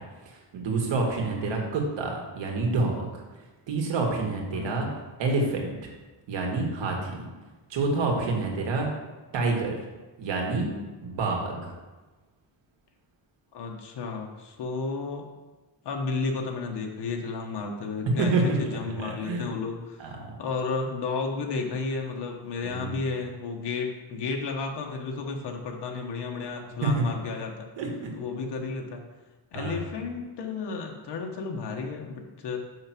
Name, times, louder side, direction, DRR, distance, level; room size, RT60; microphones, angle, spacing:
voice 1, 0.3-3.2 3.7-4.9 5.2-5.7 6.3-7.3 7.7-8.9 9.3-9.8 10.2-10.7 11.0-11.7 18.2-19.4 20.0-20.3 22.6-23.0 26.8-27.0 27.8-28.1 29.5-29.8, right 3 dB, 85° right, 1 dB, 2.0 m, -28 dB
voice 2, 1.4-1.7 4.5-4.9 13.5-15.2 15.8-18.3 18.6-27.7 28.1-29.0 29.5-32.6, left 4 dB, 70° left, 2 dB, 1.3 m, -32 dB
6.4 x 6.0 x 6.0 m, 1.2 s
cardioid pair, 135°, 43 cm